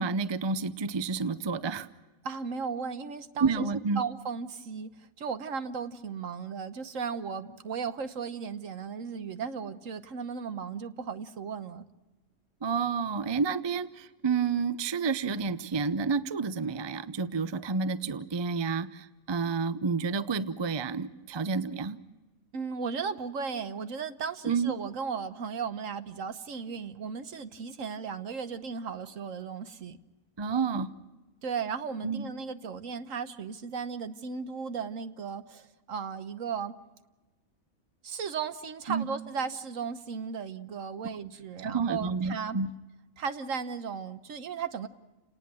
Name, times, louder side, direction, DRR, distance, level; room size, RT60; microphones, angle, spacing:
voice 1, 0.0-1.9 3.4-4.0 12.6-22.0 24.5-24.7 30.4-30.9 32.0-32.3 38.9-39.1 41.6-42.7, right 5 dB, 30° right, 0.5 m, -30 dB
voice 2, 2.2-11.8 22.5-30.0 31.4-36.8 38.0-42.6 43.2-44.9, right 6 dB, 70° right, 1.4 m, -36 dB
30.0 x 19.0 x 6.2 m
omnidirectional pair, 1.4 m